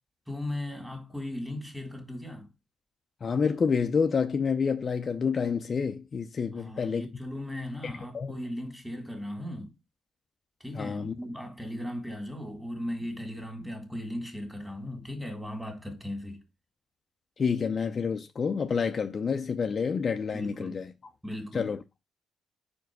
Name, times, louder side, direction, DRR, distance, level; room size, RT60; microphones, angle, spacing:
voice 1, 0.3-2.5 6.5-9.7 10.6-16.4 20.3-20.9 21.2-21.7, left 1 dB, 5° right, 2.3 m, -37 dB
voice 2, 3.2-7.1 7.8-8.3 10.7-11.1 17.4-20.9 21.5-21.8, left 6 dB, 40° left, 0.6 m, -28 dB
4.8 x 4.6 x 4.6 m
cardioid pair, 90°, 0 cm